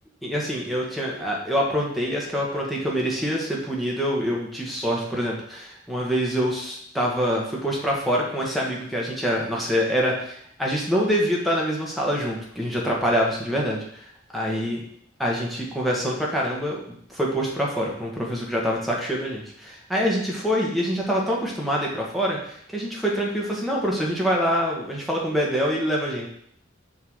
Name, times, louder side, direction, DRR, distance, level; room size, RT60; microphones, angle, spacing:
voice 1, 0.2-14.0 14.3-14.8 15.2-16.8 17.1-26.3, equal, ahead, -4 dB, 1.6 m, -25 dB
7.0 x 3.9 x 6.4 m, 0.67 s
head